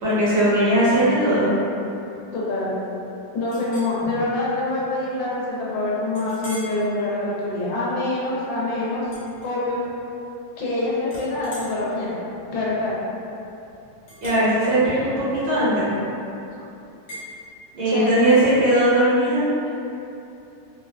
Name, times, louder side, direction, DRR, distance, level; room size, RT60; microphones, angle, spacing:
voice 1, 0.0-1.5 14.2-15.9 17.7-19.4, right 1 dB, 65° right, -11 dB, 1.4 m, -19 dB
voice 2, 2.3-2.8 3.3-9.1 9.4-9.8 10.6-12.2 12.5-13.0 17.8-18.1, left 2 dB, 85° left, -7 dB, 1.4 m, -25 dB
Chink clink, 3.5-4.0 4.5-4.7 5.1-5.2 6.1-6.8 7.3-7.6 9.0-10.0 10.3-10.7 11.0-16.2 17.1-17.3, equal, 50° left, 0.7 m, -42 dB
3.6 x 2.2 x 2.2 m, 2.8 s
omnidirectional pair, 2.0 m